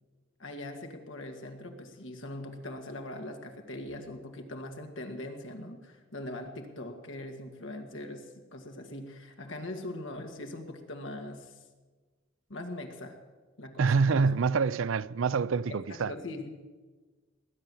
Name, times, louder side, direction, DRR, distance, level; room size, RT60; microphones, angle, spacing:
voice 1, 0.4-11.6 12.5-13.2 13.6-14.3 15.9-16.5, left 1 dB, 65° left, 2.0 m, -41 dB
voice 2, 13.8-16.1, right 5 dB, 75° right, 0.5 m, -26 dB
20.0 x 9.3 x 7.1 m
head